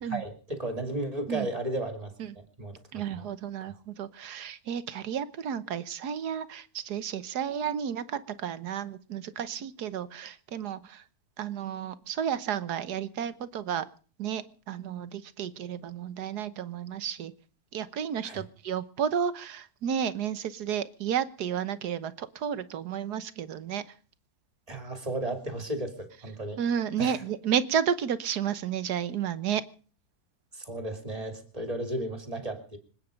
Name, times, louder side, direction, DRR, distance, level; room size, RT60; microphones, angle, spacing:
voice 1, 0.0-3.2 18.2-18.4 24.7-26.6 27.0-27.2 30.5-32.8, right 1 dB, 20° right, 6 dB, 2.8 m, -34 dB
voice 2, 2.9-11.0 11.4-13.9 14.2-17.3 17.7-23.8 26.6-29.6, right 8 dB, 70° right, 14 dB, 1.6 m, -32 dB
26.0 x 9.3 x 5.2 m, 0.41 s
omnidirectional pair, 1.8 m